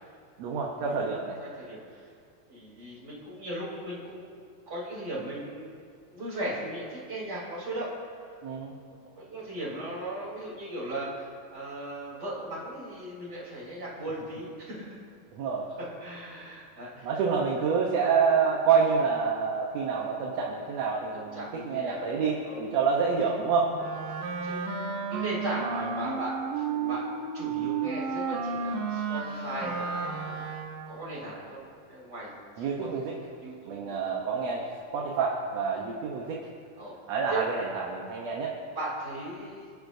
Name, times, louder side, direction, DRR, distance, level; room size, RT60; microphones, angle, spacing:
voice 1, 0.4-1.4 8.4-8.7 15.3-15.7 17.0-23.9 32.6-33.2 33.7-36.5 37.1-38.6, right 5 dB, 65° right, -1 dB, 1.9 m, -28 dB
voice 2, 1.4-2.1 2.5-4.4 4.7-5.8 6.1-7.9 8.9-15.0 16.0-17.1 21.1-22.1 22.4-22.6 23.8-24.6 24.8-27.0 27.3-30.5 30.9-31.6 31.9-32.4 32.8-33.0 33.4-34.0 36.8-36.9 37.3-37.4 38.7-39.7, right 1 dB, 30° right, -6 dB, 4.0 m, -37 dB
Wind instrument woodwind instrument, 23.7-31.0, right 5 dB, 80° right, 2.7 m, -32 dB
27.5 x 10.0 x 2.7 m, 2.1 s
omnidirectional pair, 3.8 m